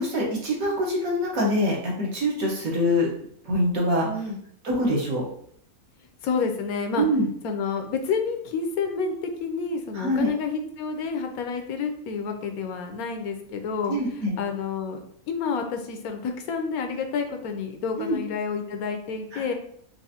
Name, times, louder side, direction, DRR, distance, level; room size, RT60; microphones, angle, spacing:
voice 1, 0.0-3.1 3.4-4.1 4.6-5.2 7.0-7.2 10.0-10.3 13.9-14.3 18.0-18.2 19.3-19.5, equal, 70° right, -3 dB, 1.6 m, -24 dB
voice 2, 4.1-4.4 6.2-7.1 7.4-13.9 14.4-15.0 15.3-19.5, left 5 dB, 80° left, 5 dB, 1.1 m, -29 dB
4.7 x 2.6 x 2.8 m, 0.64 s
omnidirectional pair, 1.5 m